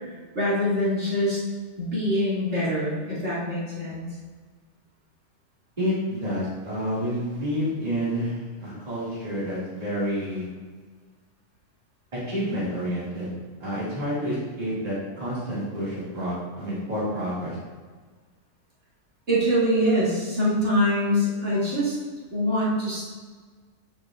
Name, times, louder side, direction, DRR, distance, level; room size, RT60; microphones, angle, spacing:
voice 1, 0.3-1.4 1.8-4.1 19.3-21.9 22.3-23.0, equal, 55° right, -9 dB, 2.8 m, -24 dB
voice 2, 5.8-10.5 12.1-13.3 13.6-17.6, equal, 30° right, -9 dB, 2.3 m, -29 dB
8.6 x 7.3 x 2.5 m, 1.5 s
omnidirectional pair, 1.4 m